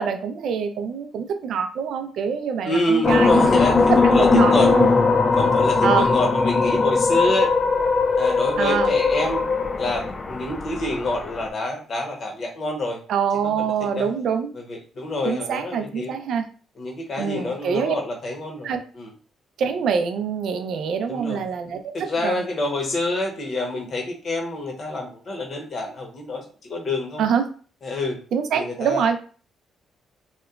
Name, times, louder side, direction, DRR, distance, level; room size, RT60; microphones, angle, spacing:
voice 1, 0.0-4.9 5.8-6.1 8.6-8.9 13.1-14.5 15.2-16.4 17.2-18.0 18.6-18.8 19.6-22.4 27.2-27.4 28.3-29.2, right 7 dB, 70° right, 8 dB, 0.4 m, -25 dB
voice 2, 2.6-4.7 5.3-7.5 8.1-9.5 9.7-13.0 13.4-14.1 14.5-16.1 16.8-19.1 21.1-21.4 21.9-27.2 27.8-28.2 28.5-29.1, left 2 dB, 50° left, 1 dB, 0.8 m, -27 dB
sound 1, 3.0-11.5, left 4 dB, 35° left, 0.3 m, -19 dB
2.8 x 2.1 x 2.3 m, 0.41 s
cardioid pair, 90°, 0 cm